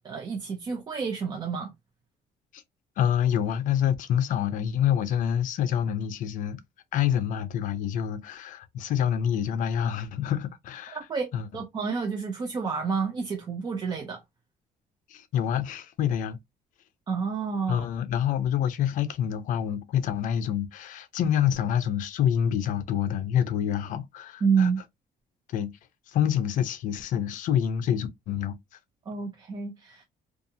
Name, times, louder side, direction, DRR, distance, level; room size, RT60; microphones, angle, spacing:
voice 1, 0.0-1.7 10.9-11.3 11.5-14.2 17.1-17.9 24.4-24.8 29.1-30.0, right 5 dB, 25° right, 0.4 m, -29 dB
voice 2, 3.0-6.6 6.9-11.0 11.3-11.6 15.1-16.4 17.7-24.7 25.5-25.7 26.1-28.6, left 9 dB, 55° left, 0.5 m, -27 dB
2.6 x 2.4 x 2.6 m
cardioid pair, 170°, 16 cm